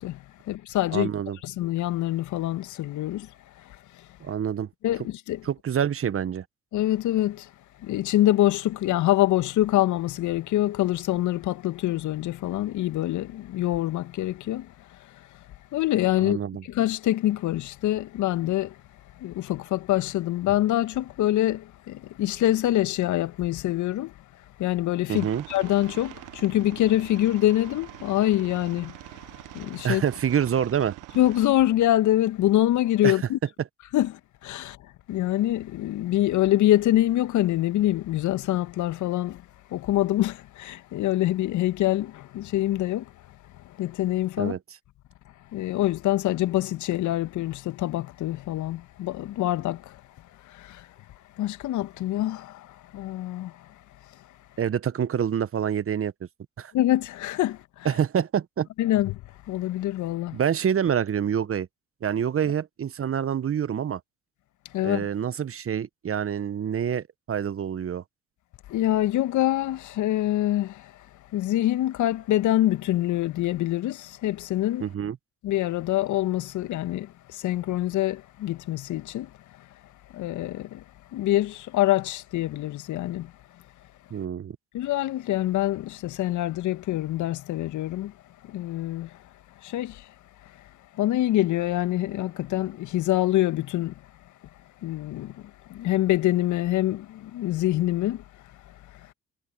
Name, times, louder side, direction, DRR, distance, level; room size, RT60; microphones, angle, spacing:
voice 1, 0.0-1.1 1.4-3.3 3.7-3.8 4.8-5.4 6.7-7.5 7.8-14.7 15.0-15.3 15.7-18.8 19.2-24.1 24.6-28.9 29.5-30.0 31.2-33.4 33.9-34.8 35.1-39.4 39.7-43.1 43.7-44.6 45.5-50.0 50.4-50.9 51.4-53.7 56.7-57.9 58.8-59.2 59.5-60.4 64.7-65.1 68.7-70.9 71.3-74.8 75.4-79.3 80.1-80.8 81.1-83.3 84.7-88.1 88.4-89.2 89.6-90.1 90.9-93.9 94.8-98.2, left 14 dB, 65° left, 1.9 m, -25 dB
voice 2, 0.9-1.4 4.2-4.7 5.4-6.4 16.2-16.6 25.1-25.4 29.8-30.9 33.0-33.2 44.4-44.6 54.6-56.1 56.6-56.7 57.8-58.7 60.3-61.7 62.0-64.0 64.8-68.0 74.8-75.2 84.1-84.6, right 8 dB, 40° right, 1.4 m, -26 dB
Aircraft, 25.1-31.5, right 20 dB, 70° right, 1.6 m, -44 dB
hypercardioid pair, 50°, 32 cm